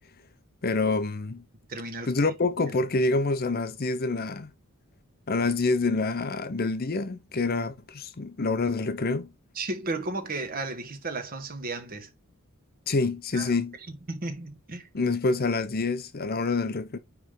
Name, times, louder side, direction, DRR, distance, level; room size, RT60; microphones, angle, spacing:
voice 1, 0.6-1.4 2.1-4.5 5.3-9.3 12.9-13.7 14.9-17.0, left 3 dB, 45° left, 0.7 m, -27 dB
voice 2, 1.7-2.1 9.5-12.1 13.3-13.5 14.1-14.9, right 2 dB, 40° right, 1.3 m, -34 dB
9.4 x 3.4 x 3.8 m
head